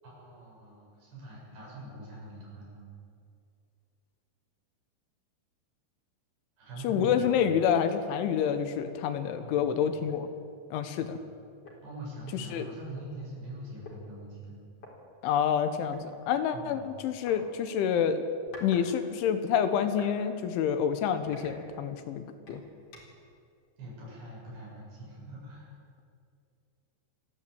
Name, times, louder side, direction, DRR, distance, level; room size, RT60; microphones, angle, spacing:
voice 1, 0.0-2.9 6.6-7.5 9.4-9.9 11.0-11.1 11.8-14.6 16.5-17.0 23.8-25.7, right 1 dB, 65° right, -4 dB, 9.5 m, -43 dB
voice 2, 6.8-10.3 10.7-11.2 12.3-12.7 15.2-18.2 18.6-22.6, left 8 dB, 80° left, 9 dB, 3.6 m, -28 dB
sound 1, 8.8-9.0 9.5-9.6 10.0-10.3 11.3-11.4 11.6-13.1 13.8-14.0 14.8-14.9 15.9-16.1 17.3-17.5 18.2-18.9 19.2-20.2 20.6-20.8 21.3-22.1 22.5-23.3, left 2 dB, 35° left, 4.6 m, -50 dB
29.0 x 12.0 x 8.7 m, 2.4 s
omnidirectional pair, 5.4 m